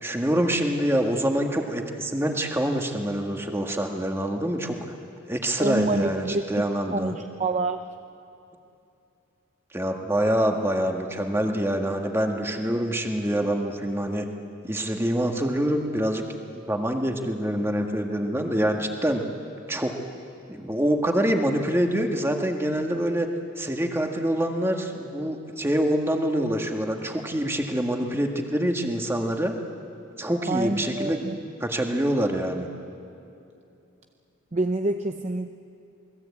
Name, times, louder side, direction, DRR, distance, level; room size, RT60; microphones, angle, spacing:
voice 1, 0.0-4.8 5.3-7.1 9.7-14.3 14.6-16.2 16.7-19.2 19.7-19.9 20.5-23.3 23.6-29.5 30.2-31.3 31.6-32.7, right 1 dB, 10° right, 3 dB, 1.7 m, -25 dB
voice 2, 5.6-6.4 6.9-7.9 30.5-31.4 34.5-35.5, right 2 dB, 35° right, 6 dB, 0.6 m, -27 dB
27.5 x 19.5 x 8.5 m, 2.6 s
head